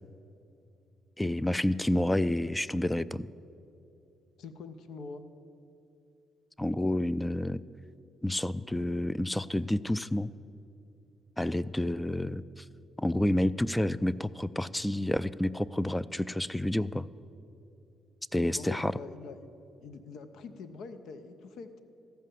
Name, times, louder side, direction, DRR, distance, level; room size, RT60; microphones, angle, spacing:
voice 1, 1.2-3.3 6.6-7.6 8.2-10.3 11.4-12.6 13.0-17.1 18.3-18.9, left 1 dB, 10° left, 18 dB, 0.3 m, -29 dB
voice 2, 4.4-5.2 18.5-19.5 19.8-21.8, left 4 dB, 75° left, 9 dB, 0.6 m, -44 dB
14.0 x 5.7 x 7.5 m, 2.8 s
supercardioid pair, 60°, 0 cm